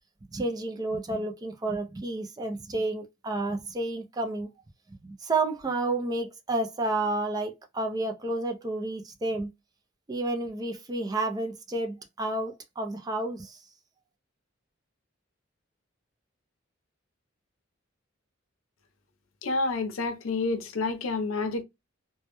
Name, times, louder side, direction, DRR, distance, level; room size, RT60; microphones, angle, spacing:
voice 1, 0.3-4.5 5.0-9.5 10.1-13.6, right 2 dB, 20° right, 0.3 m, -30 dB
voice 2, 19.4-21.6, left 3 dB, 85° left, 0.6 m, -29 dB
2.1 x 2.0 x 2.9 m
head